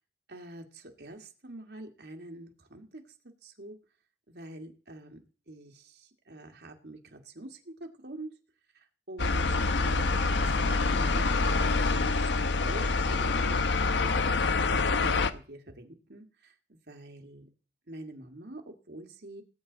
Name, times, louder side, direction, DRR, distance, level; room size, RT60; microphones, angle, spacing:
voice 1, 0.3-3.0 3.4-3.8 4.3-5.2 5.5-8.3 8.7-12.3 12.6-13.8 14.1-14.5 15.0-17.5 17.9-19.4, right 1 dB, 65° right, 3 dB, 1.9 m, -46 dB
sound 1, 9.2-15.3, left 3 dB, 80° left, 0.7 m, -26 dB
19.0 x 8.4 x 4.0 m, 0.39 s
head